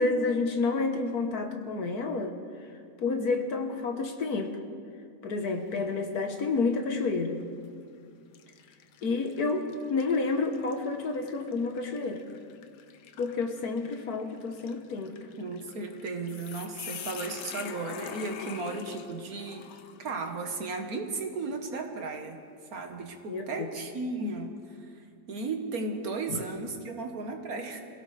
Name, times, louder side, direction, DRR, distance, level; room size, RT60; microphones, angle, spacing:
voice 1, 0.0-2.3 3.0-4.6 5.2-7.4 9.0-12.2 13.2-15.1 23.3-23.7 26.3-26.4, left 3 dB, 65° left, 5 dB, 1.6 m, -29 dB
sound 1, 5.4-5.9 6.4-6.5 7.5-7.7 8.3-20.4, left 8 dB, 80° left, 1.4 m, -45 dB
voice 2, 15.4-19.7 20.0-22.4 22.7-27.8, right 3 dB, 60° right, 4 dB, 1.7 m, -35 dB
26.0 x 16.5 x 3.3 m, 2.2 s
omnidirectional pair, 1.8 m